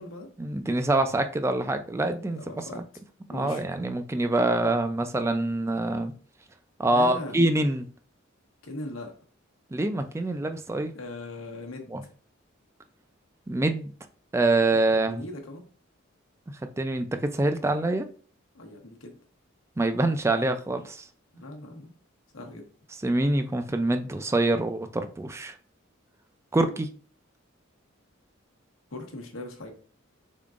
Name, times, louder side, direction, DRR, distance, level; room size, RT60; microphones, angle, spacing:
voice 1, 0.4-2.4 2.8-2.9 3.3-6.1 6.8-7.9 9.7-10.9 11.9-12.0 13.5-13.9 14.3-15.2 16.8-18.1 19.8-21.1 23.0-25.5 26.5-26.9, right 2 dB, 15° right, 0.3 m, -25 dB
voice 2, 2.4-2.8 3.3-3.6 6.9-7.4 8.6-9.1 10.9-12.0 15.1-15.6 18.5-19.2 21.3-21.9 22.3-22.7 28.9-29.7, left 2 dB, 85° left, 0.9 m, -39 dB
3.7 x 3.7 x 2.4 m
head